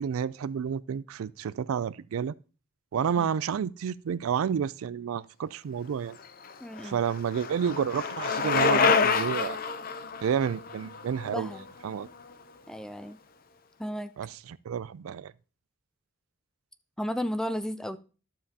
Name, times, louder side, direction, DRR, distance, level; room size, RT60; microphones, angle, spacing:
voice 1, 0.0-2.3 2.9-6.2 6.8-9.6 10.2-11.5 11.8-12.1 14.2-15.3, right 7 dB, 80° right, 0.3 m, -30 dB
Bicycle, 6.2-12.2, left 5 dB, 45° left, 0.6 m, -28 dB
voice 2, 6.6-7.0 11.3-11.6 12.7-13.2 13.8-14.1 17.0-18.0, equal, 5° left, 0.3 m, -33 dB
11.5 x 7.3 x 2.8 m
head